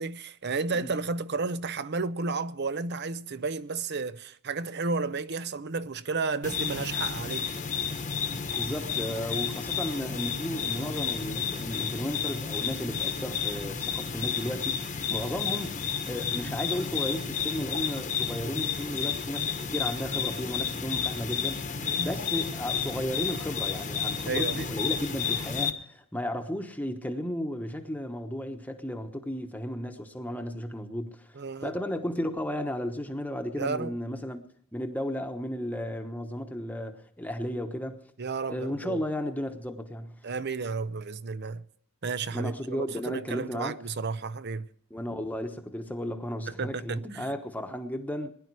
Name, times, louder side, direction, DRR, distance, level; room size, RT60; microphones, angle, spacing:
voice 1, 0.0-7.5 21.8-22.1 24.3-24.7 31.3-31.7 33.6-33.9 38.2-39.0 40.2-41.6 42.0-44.7 46.5-47.3, right 4 dB, 50° right, 0.7 m, -32 dB
sound 1, 6.4-25.7, left 7 dB, 35° left, 1.2 m, -31 dB
voice 2, 8.6-15.8 16.1-31.3 31.6-34.4 34.7-38.0 38.5-40.2 42.3-43.8 44.9-48.3, equal, 10° left, 1.1 m, -34 dB
20.5 x 11.0 x 4.7 m
head